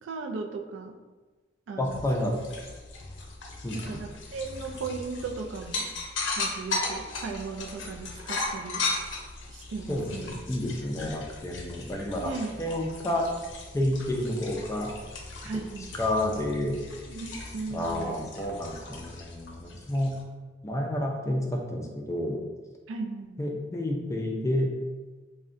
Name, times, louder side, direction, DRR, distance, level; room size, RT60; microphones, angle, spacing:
voice 1, 0.0-0.9 1.7-2.0 3.7-5.9 6.4-8.9 9.5-10.3 12.1-12.5 15.4-15.9 17.1-18.2 22.9-23.4, right 4 dB, 90° right, 3 dB, 0.3 m, -37 dB
sound 1, 1.8-20.2, left 3 dB, 75° left, 0.5 m, -37 dB
voice 2, 1.8-2.4 3.6-4.0 9.9-12.3 12.6-13.3 13.7-14.9 15.9-16.8 17.7-20.2 20.6-22.4 23.4-24.7, left 1 dB, 15° left, 1 dB, 0.3 m, -30 dB
3.6 x 2.1 x 2.5 m, 1.3 s
head